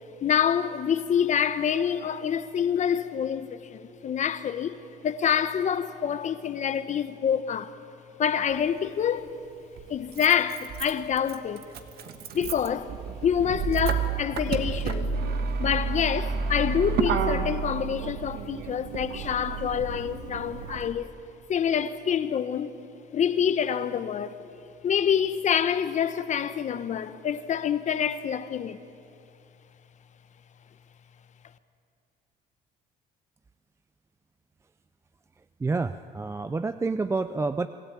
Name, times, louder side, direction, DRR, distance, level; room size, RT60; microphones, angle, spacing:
voice 1, 0.2-4.8 5.0-7.8 8.2-9.2 9.9-11.6 12.3-12.9 13.2-15.1 15.6-21.1 21.5-22.7 23.1-24.3 24.8-28.8, left 8 dB, 45° left, 1.0 m, -26 dB
Motor vehicle (road), 8.5-8.6 9.8-20.9, right 5 dB, 70° right, 1.4 m, -30 dB
voice 2, 35.6-37.7, right 3 dB, 15° right, 0.4 m, -28 dB
25.0 x 14.0 x 8.8 m
cardioid pair, 110°, 17 cm